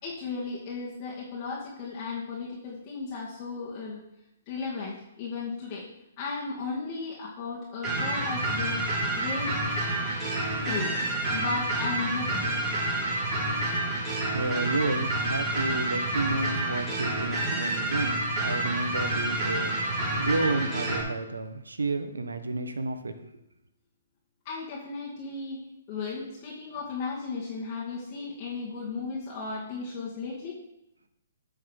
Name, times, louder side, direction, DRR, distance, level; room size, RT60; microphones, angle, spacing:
voice 1, 0.0-4.0 4.5-5.9 6.2-8.8 9.2-9.5 10.6-10.9 11.3-12.7 24.4-25.6 25.9-30.5, left 4 dB, 35° left, -6 dB, 2.3 m, -35 dB
sound 1, 7.8-21.0, right 1 dB, 25° right, 4.4 m, -29 dB
voice 2, 14.3-19.8 20.2-23.1, right 3 dB, 85° right, 9 dB, 1.2 m, -31 dB
8.8 x 5.9 x 6.5 m, 0.87 s
figure-of-eight pair, 130°, 0 cm